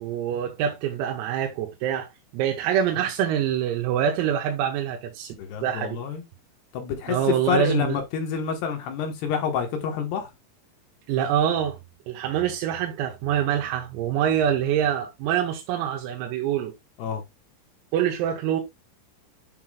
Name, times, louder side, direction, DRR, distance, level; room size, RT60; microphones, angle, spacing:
voice 1, 0.0-5.4 5.6-6.0 7.1-8.0 11.1-11.8 12.1-16.7 17.9-18.6, right 9 dB, 90° right, 3.7 m, -25 dB
voice 2, 5.3-6.2 6.7-10.3 17.0-17.2, left 7 dB, 65° left, 2.8 m, -28 dB
11.0 x 5.8 x 2.3 m
omnidirectional pair, 5.9 m